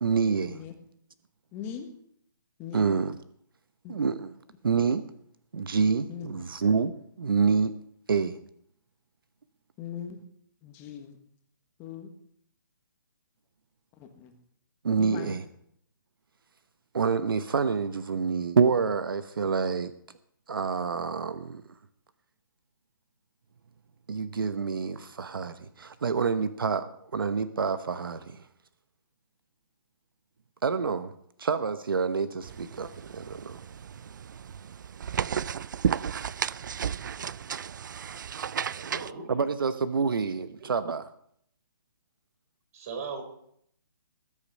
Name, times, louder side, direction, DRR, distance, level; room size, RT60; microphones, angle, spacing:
voice 1, 0.0-0.6 2.7-3.1 3.9-4.3 4.6-5.0 5.5-6.9 7.2-7.7 8.1-8.4 14.8-15.4 16.9-19.9 20.5-21.6 24.1-28.5 30.6-31.1 31.4-33.6 39.3-41.1, right 5 dB, 75° right, 12 dB, 0.9 m, -27 dB
voice 2, 1.5-1.9 2.6-3.0 3.8-4.0 6.1-6.3 9.8-10.2 10.6-11.2 11.8-12.1 13.9-14.3 15.0-15.4, left 8 dB, 20° left, 6 dB, 1.4 m, -40 dB
sound 1, 32.4-39.1, right 8 dB, 60° right, 0.5 m, -33 dB
voice 3, 38.6-39.3 40.6-40.7 42.7-43.2, right 5 dB, 40° right, 5 dB, 4.2 m, -38 dB
20.0 x 8.7 x 5.5 m, 0.68 s
hypercardioid pair, 155°, 12 cm